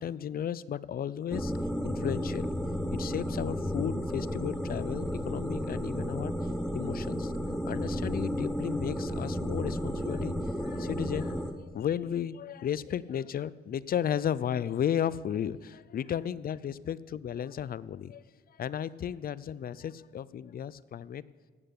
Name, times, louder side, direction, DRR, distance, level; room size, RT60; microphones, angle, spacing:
voice 1, 0.0-1.5 1.8-2.5 2.9-6.3 6.7-7.3 7.7-11.4 11.7-18.2 18.6-21.2, left 9 dB, 50° left, 19 dB, 0.5 m, -34 dB
sound 1, 1.3-11.5, equal, 5° left, 1.2 m, -33 dB
17.0 x 8.8 x 6.8 m, 1.5 s
cardioid pair, 90°, 20 cm